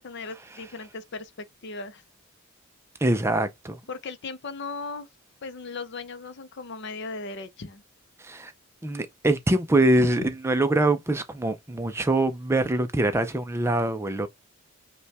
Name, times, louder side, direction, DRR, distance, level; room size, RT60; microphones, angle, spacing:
voice 1, 0.0-2.0 3.9-5.1 5.4-7.8 10.0-10.3, left 3 dB, 50° left, 0.6 m, -37 dB
voice 2, 3.0-3.8 8.2-8.5 8.8-14.3, right 1 dB, 10° right, 0.4 m, -24 dB
5.4 x 2.3 x 3.2 m
head